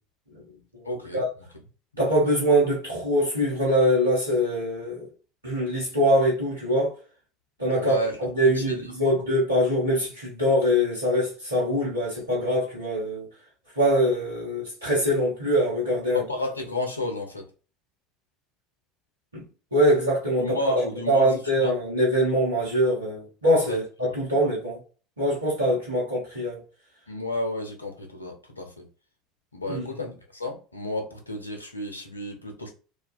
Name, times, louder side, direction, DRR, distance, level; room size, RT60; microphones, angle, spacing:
voice 1, 0.9-1.2 2.2-2.3 7.7-8.8 16.1-17.4 20.4-21.3 21.6-21.7 23.7-23.8 27.1-28.8 29.5-32.7, left 1 dB, 90° left, 0.5 m, -31 dB
voice 2, 2.0-5.1 5.4-6.9 7.6-13.3 13.8-16.2 19.3-19.4 19.7-24.8 25.2-26.6 29.6-29.9, equal, 85° right, 0.8 m, -23 dB
2.3 x 2.3 x 2.3 m
figure-of-eight pair, 70°, 0 cm